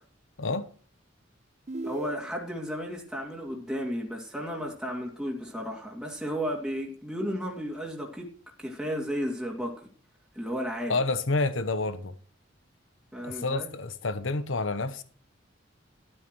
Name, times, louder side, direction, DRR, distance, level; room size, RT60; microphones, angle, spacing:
sound 1, 1.7-2.7, right 3 dB, 35° right, 0.6 m, -38 dB
voice 1, 1.8-9.8 10.3-11.0 13.1-13.7, equal, 5° right, 2.6 m, -33 dB
voice 2, 10.9-12.1 13.2-15.0, left 3 dB, 80° left, 1.0 m, -29 dB
13.5 x 12.5 x 3.2 m
head